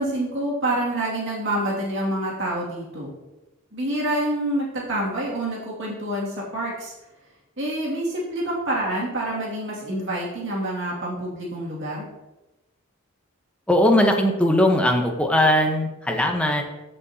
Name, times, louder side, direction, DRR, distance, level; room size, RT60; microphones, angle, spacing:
voice 1, 0.0-3.1 3.7-6.9 7.6-12.1, right 1 dB, 60° right, -4 dB, 2.3 m, -27 dB
voice 2, 13.7-16.6, left 1 dB, 5° left, 2 dB, 0.9 m, -19 dB
14.5 x 5.5 x 2.8 m, 1.0 s
head